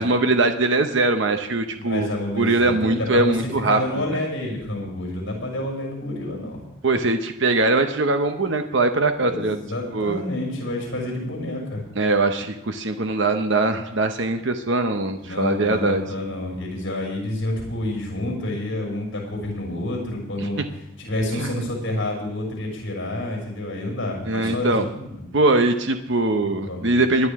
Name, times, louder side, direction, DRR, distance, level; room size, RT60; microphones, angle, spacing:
voice 1, 0.0-4.2 6.8-9.6 9.9-10.2 12.0-16.0 20.4-20.5 21.3-21.7 24.3-24.9 25.3-27.3, right 2 dB, 60° right, 7 dB, 0.8 m, -21 dB
voice 2, 1.8-3.4 3.6-6.6 9.2-11.8 15.2-20.6 21.0-25.3 26.4-26.9, left 1 dB, 60° left, -1 dB, 6.2 m, -29 dB
21.5 x 10.5 x 3.6 m, 0.84 s
head